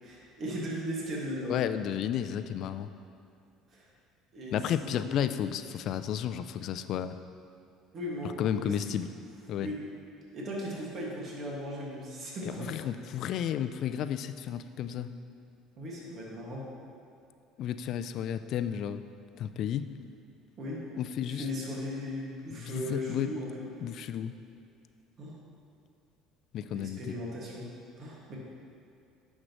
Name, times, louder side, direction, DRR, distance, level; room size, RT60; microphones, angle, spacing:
voice 1, 0.0-1.6 3.7-3.9 4.3-5.3 7.9-9.0 9.6-9.8 10.3-12.9 15.8-16.7 20.6-20.8 21.3-23.7 25.2-25.4 26.7-27.7 28.0-28.4, equal, 50° right, -4 dB, 1.9 m, -37 dB
voice 2, 1.5-2.9 4.5-7.2 8.4-9.1 9.5-9.7 12.4-15.1 17.6-19.0 19.4-19.9 21.0-21.4 22.5-23.3 23.8-24.3 26.5-27.2, left 9 dB, 55° left, 11 dB, 0.3 m, -32 dB
9.7 x 6.3 x 3.1 m, 2.5 s
hypercardioid pair, 65°, 0 cm